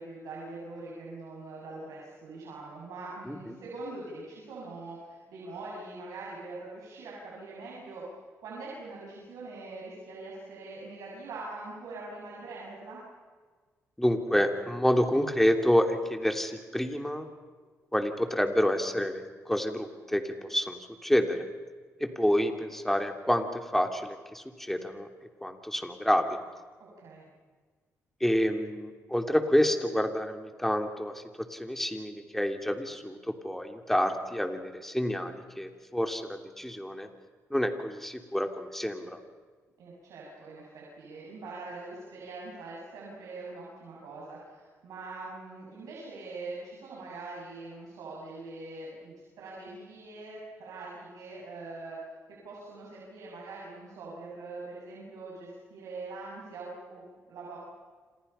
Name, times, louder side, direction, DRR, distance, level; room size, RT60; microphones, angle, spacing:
voice 1, 0.0-8.0 8.4-13.0 26.8-27.3 39.8-52.0 52.4-57.6, right 3 dB, 80° right, -5 dB, 7.1 m, -43 dB
voice 2, 3.3-3.6 14.0-17.3 17.9-21.4 22.0-25.1 25.4-26.3 28.2-37.1 37.5-39.2, equal, 5° left, 5 dB, 3.0 m, -28 dB
27.5 x 27.5 x 5.7 m, 1.5 s
cardioid pair, 85°, 6 cm